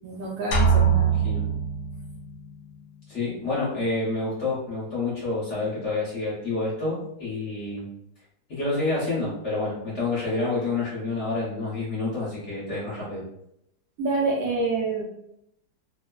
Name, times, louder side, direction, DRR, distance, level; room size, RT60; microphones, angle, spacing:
voice 1, 0.0-1.2 14.0-15.0, right 3 dB, 70° right, -3 dB, 1.0 m, -27 dB
sound 1, 0.5-2.4, right 6 dB, 75° left, 1.1 m, -22 dB
voice 2, 0.9-1.5 3.1-7.9 8.5-13.2, left 3 dB, 50° left, -6 dB, 1.0 m, -28 dB
3.1 x 2.0 x 2.2 m, 0.77 s
omnidirectional pair, 1.9 m